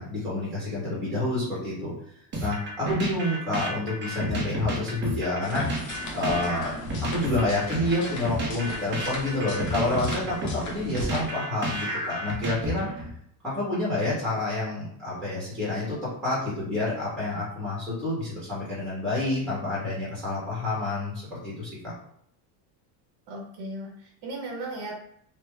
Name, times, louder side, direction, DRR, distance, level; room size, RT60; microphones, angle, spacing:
voice 1, 0.0-1.9 2.4-5.9 6.1-6.7 7.0-12.9 13.4-21.9, left 2 dB, ahead, -7 dB, 0.9 m, -28 dB
sound 1, 2.3-13.1, equal, 25° right, 0.5 m, -32 dB
sound 2, 5.4-11.3, left 2 dB, 40° left, 0.9 m, -38 dB
voice 2, 23.3-24.9, right 2 dB, 85° right, -1 dB, 1.0 m, -36 dB
3.3 x 2.0 x 3.2 m, 0.69 s
cardioid pair, 155°, 49 cm